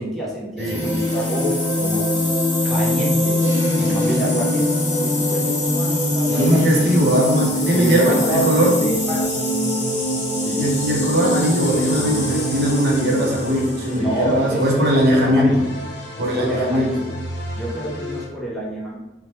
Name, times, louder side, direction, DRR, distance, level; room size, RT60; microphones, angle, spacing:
voice 1, 0.0-2.1 2.6-3.4 3.8-6.6 7.7-9.5 10.4-10.6 14.0-15.6 16.2-17.0 17.5-19.0, right 1 dB, ahead, -6 dB, 0.5 m, -27 dB
sound 1, 0.6-14.0, left 1 dB, 40° left, 0.6 m, -22 dB
voice 2, 6.3-8.7 10.6-15.6 16.2-16.9, equal, 60° right, -2 dB, 0.6 m, -19 dB
sound 2, 11.6-18.3, equal, 80° left, 0.7 m, -34 dB
3.0 x 2.1 x 2.8 m, 0.99 s
head